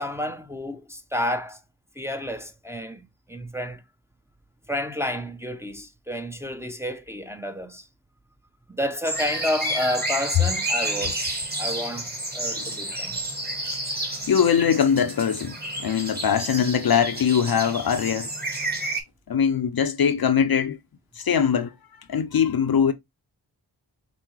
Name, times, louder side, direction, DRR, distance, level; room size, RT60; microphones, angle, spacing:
voice 1, 0.0-1.6 2.0-3.8 4.7-7.9 8.8-13.2, left 1 dB, 5° right, 0.6 m, -30 dB
sound 1, 9.0-19.0, right 1 dB, 20° right, 1.3 m, -30 dB
voice 2, 14.3-18.3 19.3-20.8 21.2-21.7 22.1-22.9, left 7 dB, 55° left, 0.6 m, -22 dB
5.9 x 2.1 x 3.0 m
cardioid pair, 45°, 45 cm